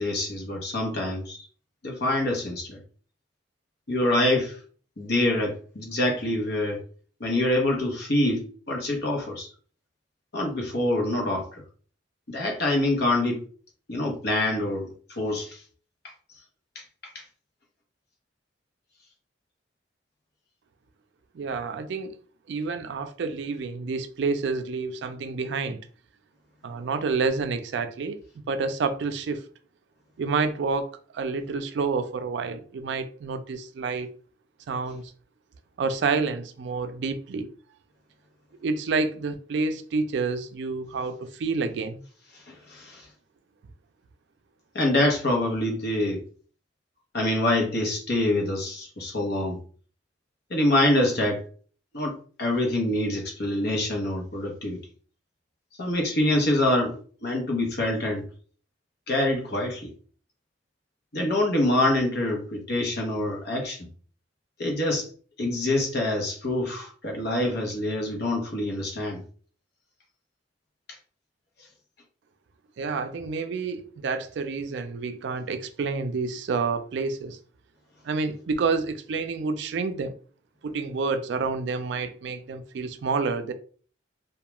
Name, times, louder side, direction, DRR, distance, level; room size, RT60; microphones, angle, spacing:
voice 1, 0.0-1.4 1.8-2.8 3.9-4.6 5.0-6.8 7.2-9.5 10.3-11.6 12.3-13.4 13.9-15.6 16.7-16.8 17.1-17.2 42.5-43.0 44.7-46.2 47.1-49.6 50.5-51.4 51.9-54.8 55.8-58.2 59.1-59.9 61.1-63.9 64.6-65.1 65.4-69.2, left 1 dB, 60° left, 0.8 m, -25 dB
voice 2, 21.3-22.2 22.5-25.8 26.6-28.2 28.5-29.4 30.2-34.1 34.7-35.0 35.8-37.5 38.6-42.0 72.8-77.4 78.0-80.1 80.6-83.5, right 4 dB, 65° right, 0.3 m, -29 dB
2.2 x 2.2 x 2.9 m
head